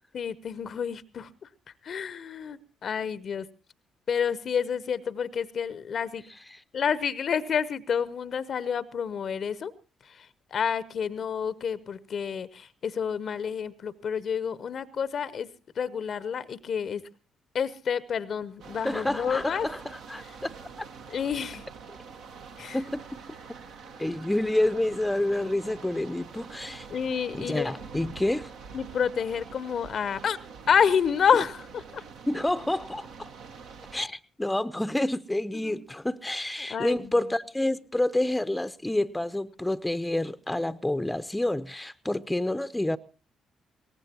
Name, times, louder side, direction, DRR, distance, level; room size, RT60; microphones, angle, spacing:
voice 1, 0.1-1.3 1.8-3.5 4.1-6.2 6.7-9.7 10.0-17.0 17.5-19.7 21.1-21.6 22.6-22.8 26.9-27.8 28.7-30.4 30.7-32.0 35.5-35.8 36.7-37.0, left 7 dB, 50° left, 0.8 m, -29 dB
sound 1, 18.6-34.1, right 5 dB, 65° right, 1.2 m, -45 dB
voice 2, 18.8-20.9 22.7-23.0 23.5-23.6 24.0-26.9 27.3-28.5 32.3-33.3 33.9-43.0, left 1 dB, 10° left, 0.7 m, -28 dB
22.0 x 18.5 x 2.9 m
figure-of-eight pair, 45°, 0 cm